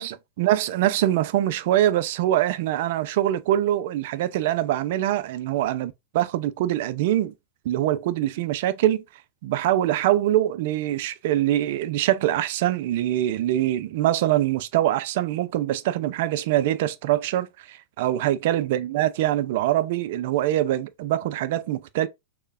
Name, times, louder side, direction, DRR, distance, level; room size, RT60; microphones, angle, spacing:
voice 1, 0.0-7.3 7.7-9.0 9.4-22.1, right 13 dB, 55° right, 0.4 m, -24 dB
6.4 x 2.2 x 2.5 m
figure-of-eight pair, 95°, 0 cm